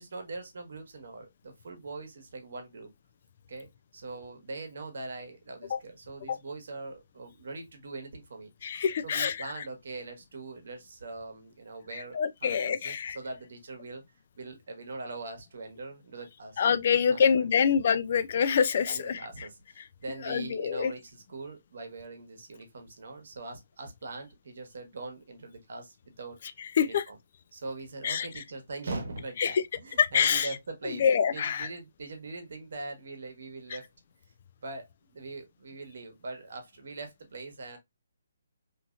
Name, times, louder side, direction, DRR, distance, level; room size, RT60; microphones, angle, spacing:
voice 1, 0.0-2.9 3.5-8.5 9.0-14.0 14.4-16.6 16.9-17.7 18.8-26.4 26.8-27.2 27.5-31.1 31.3-33.9 34.6-37.8, right 3 dB, 60° right, 1.1 m, -42 dB
voice 2, 8.6-9.4 12.1-13.2 16.6-19.2 20.2-20.9 26.8-27.0 28.0-28.3 29.4-29.6 30.0-30.5 31.0-31.7, left 7 dB, 45° left, 0.3 m, -25 dB
2.8 x 2.7 x 2.3 m
hypercardioid pair, 160°, 0 cm